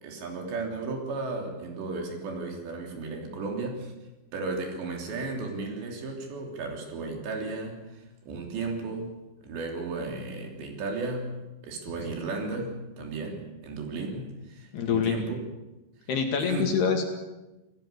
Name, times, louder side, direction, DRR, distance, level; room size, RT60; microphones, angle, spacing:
voice 1, 0.0-3.9 4.3-9.1 9.4-11.4 11.6-15.4 16.4-16.7, right 3 dB, 60° right, 2 dB, 5.2 m, -34 dB
voice 2, 14.7-15.2 16.1-17.1, left 6 dB, 60° left, 4 dB, 3.7 m, -26 dB
27.5 x 18.0 x 6.9 m, 1.0 s
omnidirectional pair, 5.8 m